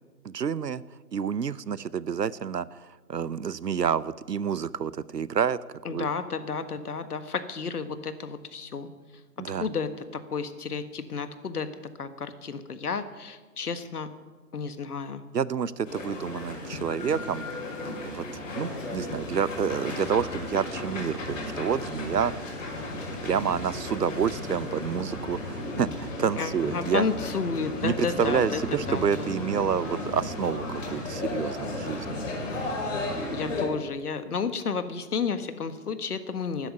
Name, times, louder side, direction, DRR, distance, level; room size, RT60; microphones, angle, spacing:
voice 1, 0.2-0.8 1.1-5.6 5.9-6.1 9.4-9.7 15.3-17.5 18.0-22.3 23.2-27.0 27.8-32.2, right 7 dB, 90° right, 19 dB, 0.8 m, -28 dB
voice 2, 5.8-8.9 9.6-11.7 12.0-14.1 14.5-15.2 26.4-28.6 28.9-29.4 33.3-36.7, left 5 dB, 70° left, 11 dB, 1.7 m, -32 dB
sound 1, 15.8-33.6, left 2 dB, 50° left, 5.5 m, -34 dB
13.0 x 10.0 x 9.5 m, 1.3 s
figure-of-eight pair, 140°, 47 cm